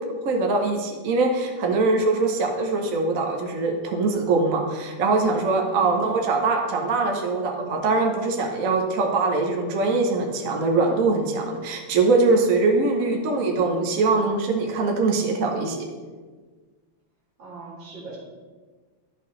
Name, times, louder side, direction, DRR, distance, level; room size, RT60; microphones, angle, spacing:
voice 1, 0.2-15.9, right 3 dB, 55° right, 2 dB, 1.0 m, -22 dB
voice 2, 12.8-13.2 17.4-18.2, right 2 dB, 70° right, -2 dB, 2.5 m, -41 dB
11.0 x 5.7 x 3.2 m, 1.4 s
omnidirectional pair, 2.1 m